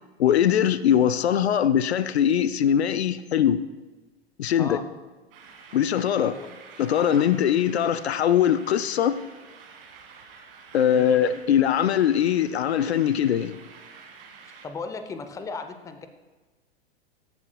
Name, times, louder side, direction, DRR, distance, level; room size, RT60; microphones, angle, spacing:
voice 1, 0.2-3.6 4.4-4.8 5.7-6.3 6.8-9.2 10.7-13.5, left 9 dB, 80° left, 0.5 m, -21 dB
sound 1, 5.3-14.7, right 5 dB, 60° right, 1.6 m, -49 dB
voice 2, 7.0-7.3 10.9-11.1 14.6-16.1, left 4 dB, 10° left, 0.5 m, -36 dB
15.0 x 6.9 x 2.2 m
hypercardioid pair, 95°, 32 cm